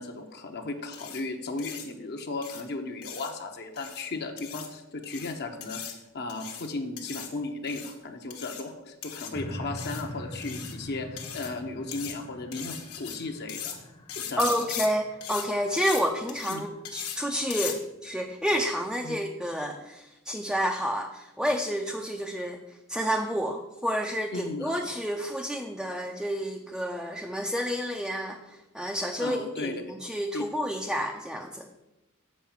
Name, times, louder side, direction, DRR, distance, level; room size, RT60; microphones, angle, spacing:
voice 1, 0.0-13.8 14.1-14.4 16.5-16.6 19.0-19.2 24.3-24.7 29.2-29.7 30.3-30.5, left 3 dB, 50° left, 4 dB, 0.9 m, -35 dB
sound 1, 0.9-1.2 1.6-1.9 2.4-2.6 3.0-3.3 3.8-4.0 4.4-4.7 5.0-5.3 5.6-5.9 6.3-6.7 7.0-7.3 7.7-7.9 8.3-8.6 9.0-9.3 9.8-10.0 10.4-10.7 11.2-11.5 11.9-12.1 12.5-13.2 13.5-13.8 14.1-14.9 15.2-15.5 15.8-16.0 16.3-16.6 16.9-17.2 17.5-17.8, left 9 dB, 90° left, 1.3 m, -38 dB
sound 2, 9.3-16.7 17.3-17.4, equal, 25° left, 0.9 m, -43 dB
voice 2, 14.4-22.6 22.9-31.7, equal, ahead, 2 dB, 0.5 m, -30 dB
7.4 x 4.8 x 7.2 m, 0.95 s
head